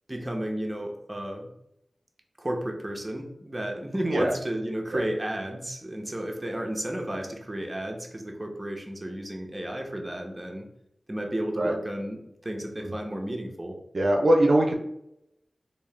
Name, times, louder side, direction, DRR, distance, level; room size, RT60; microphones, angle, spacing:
voice 1, 0.1-1.5 2.4-10.7 11.1-13.8, right 1 dB, 25° right, 1 dB, 0.9 m, -33 dB
voice 2, 13.9-14.7, right 1 dB, 70° right, 0 dB, 0.6 m, -22 dB
3.6 x 2.8 x 3.3 m, 0.79 s
cardioid pair, 45°, 0 cm